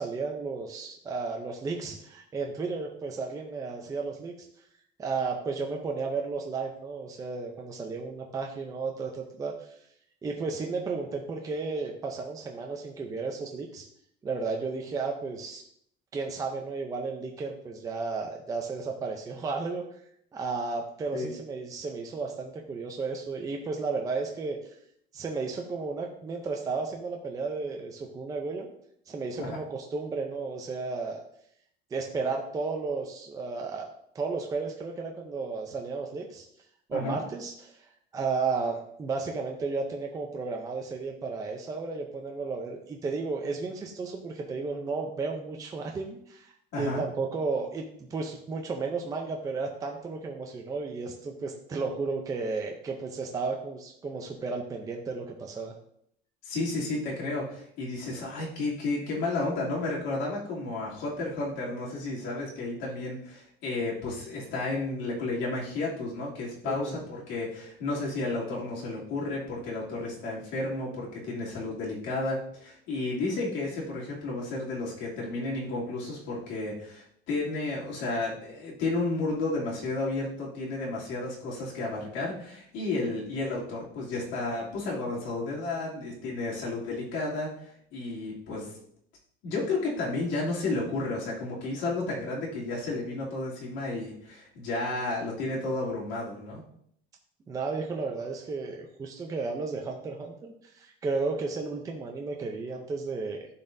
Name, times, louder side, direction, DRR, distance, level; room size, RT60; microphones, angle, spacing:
voice 1, 0.0-4.5 5.0-9.7 10.2-13.9 14.2-15.6 16.1-19.8 20.3-24.8 25.1-28.7 29.1-31.2 31.9-33.9 34.1-36.4 36.9-37.9 38.1-47.8 48.1-55.7 66.6-67.0 97.5-103.5, right 4 dB, 15° right, 1 dB, 0.6 m, -33 dB
voice 2, 46.7-47.0 56.4-87.5 87.9-88.8 89.4-96.6, left 2 dB, 65° left, -5 dB, 2.8 m, -32 dB
12.0 x 4.2 x 2.6 m, 0.69 s
cardioid pair, 175°, 20 cm